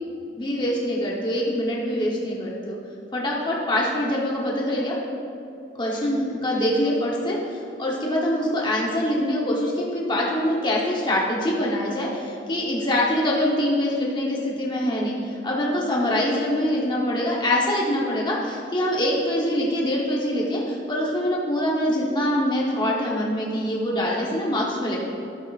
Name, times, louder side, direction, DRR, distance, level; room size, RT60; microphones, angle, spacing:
voice 1, 0.4-2.8 3.1-5.0 5.7-15.2 15.4-25.0, left 1 dB, 25° left, -4 dB, 1.0 m, -24 dB
12.5 x 8.0 x 2.4 m, 2.7 s
head